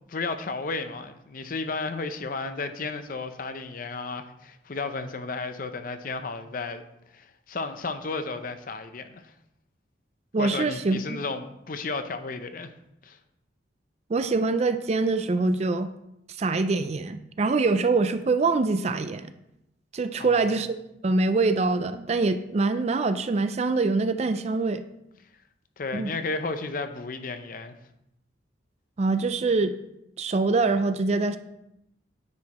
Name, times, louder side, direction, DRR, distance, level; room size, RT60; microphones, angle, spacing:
voice 1, 0.1-6.8 7.1-9.3 10.4-12.7 13.0-13.2 20.2-20.6 25.8-27.8, left 3 dB, 45° left, 9 dB, 0.5 m, -33 dB
voice 2, 10.3-11.0 14.1-15.9 16.4-19.3 19.9-20.8 21.0-24.8 25.9-26.2 29.0-29.7 30.2-31.4, right 3 dB, 35° right, 10 dB, 0.4 m, -24 dB
9.6 x 4.8 x 4.2 m, 0.83 s
head